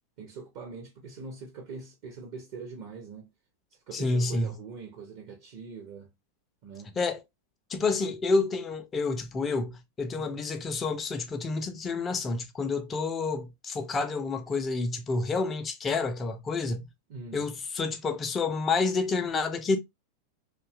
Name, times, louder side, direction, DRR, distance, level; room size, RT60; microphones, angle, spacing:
voice 1, 0.2-3.3 3.9-6.1 6.6-7.0 10.1-10.4 17.1-17.5, right 4 dB, 50° right, 0.7 m, -43 dB
voice 2, 3.9-4.5 7.0-7.2 7.7-16.9 17.3-19.8, left 3 dB, 20° left, 0.4 m, -29 dB
2.6 x 2.2 x 2.4 m
figure-of-eight pair, 90°, 0 cm